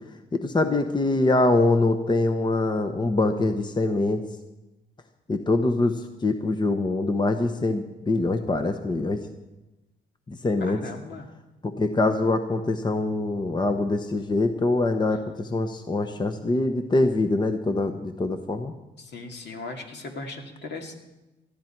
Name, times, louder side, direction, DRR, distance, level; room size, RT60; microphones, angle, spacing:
voice 1, 0.3-4.2 5.3-9.2 10.3-10.8 11.6-18.7, left 2 dB, 20° left, 7 dB, 1.0 m, -24 dB
voice 2, 10.6-11.3 19.0-20.9, left 3 dB, 60° left, 2 dB, 2.5 m, -38 dB
19.0 x 13.5 x 4.5 m, 1.0 s
cardioid pair, 90°, 20 cm